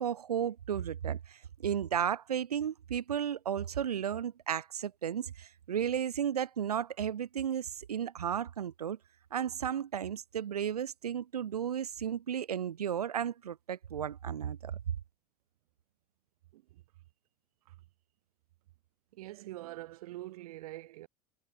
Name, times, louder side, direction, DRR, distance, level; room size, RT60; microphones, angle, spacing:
voice 1, 0.0-9.0 9.3-15.0, right 9 dB, 90° right, 3.1 m, -34 dB
voice 2, 19.1-21.1, right 16 dB, 75° right, 7.6 m, -45 dB
hypercardioid pair, 90°, 19 cm